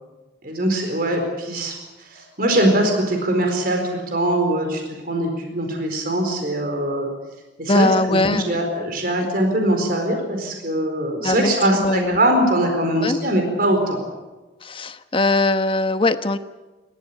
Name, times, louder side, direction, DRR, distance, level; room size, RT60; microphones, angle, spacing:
voice 1, 0.4-7.1 7.6-14.0, right 1 dB, 50° right, 3 dB, 4.4 m, -22 dB
voice 2, 7.7-8.6 11.2-12.2 13.0-13.2 14.6-16.4, left 2 dB, 30° left, 10 dB, 1.1 m, -21 dB
29.5 x 14.0 x 8.7 m, 1.2 s
head